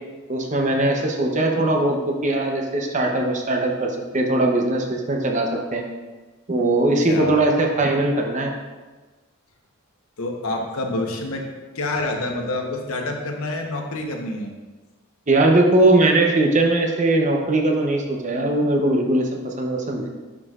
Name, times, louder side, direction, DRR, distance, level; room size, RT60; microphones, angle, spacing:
voice 1, 0.3-5.8 6.5-8.5 15.3-20.1, right 2 dB, 35° right, 1 dB, 0.8 m, -20 dB
voice 2, 10.2-11.4 11.7-14.5, left 2 dB, 75° left, 1 dB, 1.0 m, -27 dB
11.0 x 4.9 x 2.4 m, 1.3 s
head